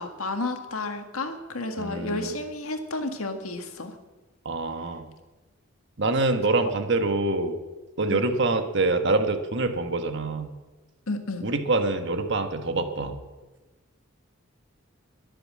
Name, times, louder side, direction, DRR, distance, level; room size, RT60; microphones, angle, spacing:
voice 1, 0.0-4.0 6.6-6.7 8.1-8.3 11.1-11.5, left 2 dB, 80° left, 6 dB, 1.8 m, -32 dB
voice 2, 1.8-2.3 4.4-5.1 6.0-7.6 8.0-10.5 11.4-13.2, right 2 dB, 55° right, 7 dB, 1.4 m, -25 dB
22.0 x 7.7 x 7.5 m, 1.2 s
head